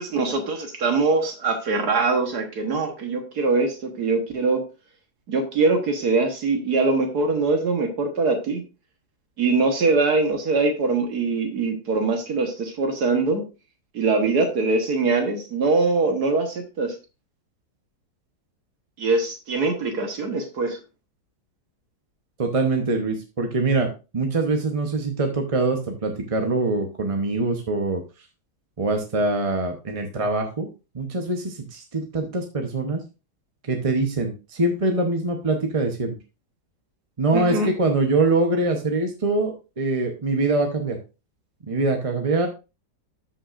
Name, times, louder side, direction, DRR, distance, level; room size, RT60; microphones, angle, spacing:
voice 1, 0.0-4.6 5.3-8.6 9.4-13.4 13.9-17.0 19.0-20.8 37.3-37.7, right 3 dB, 65° right, 5 dB, 1.8 m, -22 dB
voice 2, 22.4-28.0 28.8-30.7 30.9-33.0 33.7-36.1 37.2-41.0 41.7-42.5, right 2 dB, 30° right, 3 dB, 0.7 m, -24 dB
13.0 x 5.7 x 2.5 m, 0.29 s
omnidirectional pair, 1.8 m